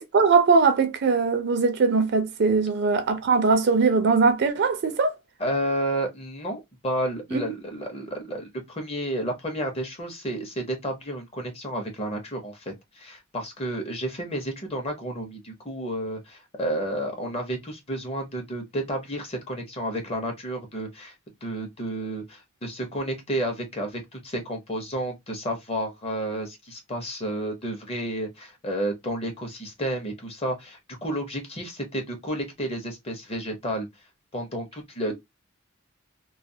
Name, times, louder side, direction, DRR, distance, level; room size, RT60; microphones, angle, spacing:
voice 1, 0.0-5.1 7.3-7.6, right 4 dB, 55° right, 0.5 m, -21 dB
voice 2, 5.4-21.1 21.4-33.9 34.3-35.1, right 1 dB, 30° left, 0.7 m, -31 dB
2.3 x 2.2 x 2.7 m
head